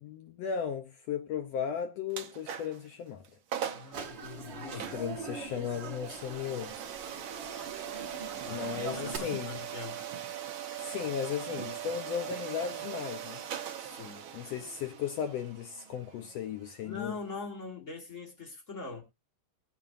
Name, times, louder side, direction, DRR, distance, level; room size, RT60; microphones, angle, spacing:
voice 1, 0.0-3.2 4.9-6.7 8.4-9.6 10.8-13.4 14.3-17.1, left 8 dB, 80° left, 1.5 m, -36 dB
sound 1, 2.1-2.9 3.2-3.3 3.5-4.0 4.7-17.4, right 9 dB, 80° right, 1.1 m, -41 dB
voice 2, 3.7-5.0 8.4-10.0 13.8-14.2 16.8-19.0, left 4 dB, 50° left, 0.9 m, -43 dB
sound 2, 3.9-9.2, right 4 dB, 50° right, 1.4 m, -42 dB
20.5 x 7.4 x 2.5 m
omnidirectional pair, 3.7 m